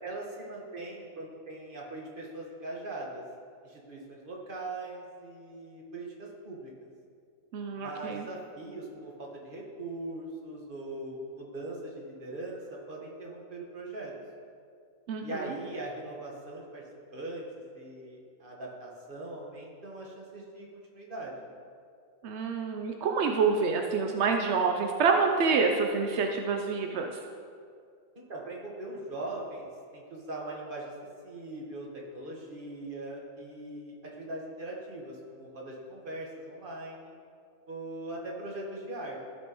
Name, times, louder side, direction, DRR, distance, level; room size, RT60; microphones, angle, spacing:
voice 1, 0.0-3.2 3.6-6.9 7.8-14.1 15.2-16.8 17.1-21.3 28.1-30.9 31.2-37.1 37.7-39.3, right 2 dB, 35° right, -2 dB, 1.5 m, -40 dB
voice 2, 7.5-8.3 15.1-15.5 22.2-27.2, right 5 dB, 70° right, 3 dB, 0.6 m, -27 dB
14.5 x 6.2 x 3.0 m, 2.3 s
omnidirectional pair, 1.7 m